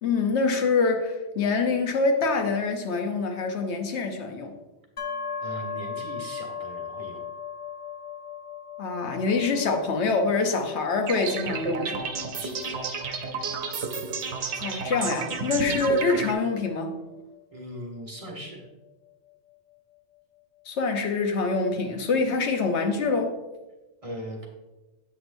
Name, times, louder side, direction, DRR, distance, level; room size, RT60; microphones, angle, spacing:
voice 1, 0.0-4.5 8.8-12.1 14.6-17.0 20.7-23.4, left 4 dB, 80° left, 1.1 m, -25 dB
sound 1, 5.0-18.7, left 6 dB, 35° left, 0.6 m, -39 dB
voice 2, 5.4-7.2 11.2-11.5 12.4-12.8 17.5-18.7 24.0-24.5, right 1 dB, 30° right, 1.2 m, -39 dB
sound 2, 11.1-16.3, right 5 dB, 90° right, 1.0 m, -31 dB
8.2 x 6.1 x 2.6 m
omnidirectional pair, 1.1 m